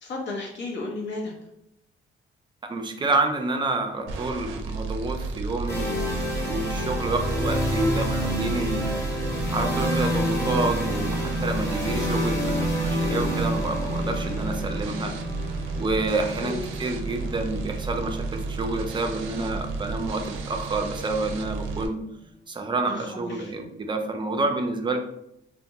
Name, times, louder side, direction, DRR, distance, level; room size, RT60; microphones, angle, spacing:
voice 1, 0.0-1.3 16.4-16.6 22.9-23.5, left 2 dB, 65° left, 0 dB, 0.8 m, -33 dB
voice 2, 2.6-8.9 9.5-15.1 15.7-22.0 22.5-25.0, right 3 dB, 25° right, 4 dB, 0.4 m, -29 dB
sound 1, 4.1-21.9, right 4 dB, 90° right, 0.4 m, -32 dB
sound 2, 5.7-19.5, equal, 15° left, 0.9 m, -29 dB
2.5 x 2.1 x 2.8 m, 0.79 s
cardioid pair, 90°, 20 cm